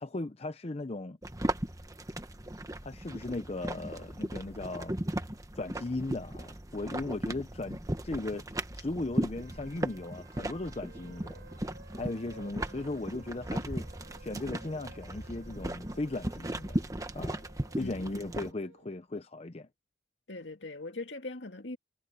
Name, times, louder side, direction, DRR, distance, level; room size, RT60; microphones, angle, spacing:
voice 1, 0.0-1.2 2.8-4.9 5.6-11.5 12.0-13.9 14.2-16.8 17.1-17.5 17.7-19.7, left 2 dB, 35° left, 0.7 m, -37 dB
sound 1, 1.2-18.5, right 1 dB, 20° right, 1.3 m, -37 dB
Trumpet, 9.2-16.9, right 5 dB, 50° right, 3.9 m, -61 dB
sound 2, 10.8-18.9, right 2 dB, 90° right, 2.2 m, -57 dB
voice 2, 17.8-18.2 20.3-21.8, left 2 dB, 70° left, 2.3 m, -41 dB
head